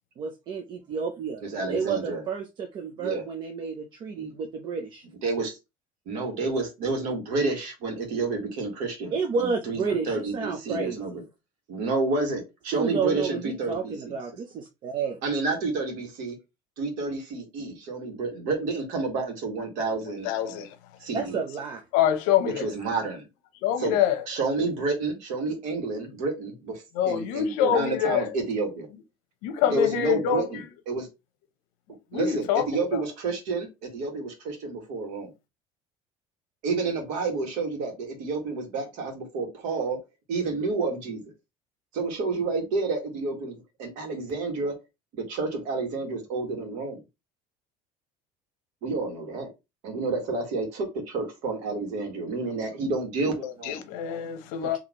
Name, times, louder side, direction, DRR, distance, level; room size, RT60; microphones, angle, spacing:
voice 1, 0.2-1.4 1.7-5.0 9.1-11.0 12.7-15.2 21.1-21.8 54.6-54.8, right 5 dB, 35° right, 0.5 m, -31 dB
voice 2, 1.4-2.2 3.0-3.2 4.2-4.3 5.2-5.6 6.0-11.2 11.7-14.2 15.2-16.4 16.8-20.6 21.0-21.4 22.4-23.3 23.8-24.0 24.3-28.9 29.7-31.1 32.1-35.3 36.6-40.0 40.3-41.3 41.9-44.7 45.2-47.0 48.8-49.5 49.8-53.8, right 3 dB, 65° right, 1.6 m, -30 dB
voice 3, 20.2-20.7 21.9-22.7 23.6-24.2 26.9-28.3 29.4-30.4 32.1-32.7 53.4-54.8, left 10 dB, 75° left, 0.8 m, -25 dB
4.2 x 2.8 x 2.9 m
cardioid pair, 170°, 14 cm